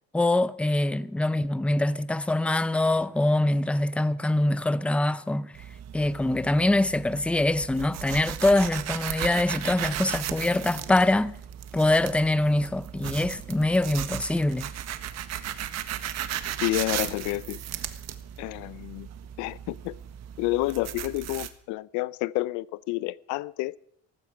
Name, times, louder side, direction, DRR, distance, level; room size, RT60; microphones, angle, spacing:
voice 1, 0.1-5.5 5.9-11.3 11.7-14.7, left 2 dB, 5° left, 0.6 m, -24 dB
sound 1, 5.5-21.5, right 11 dB, 65° right, 1.6 m, -36 dB
voice 2, 16.6-17.6 18.4-19.1 19.4-19.9 20.4-23.8, left 19 dB, 90° left, 0.6 m, -29 dB
18.5 x 15.5 x 5.0 m
cardioid pair, 120°, 29 cm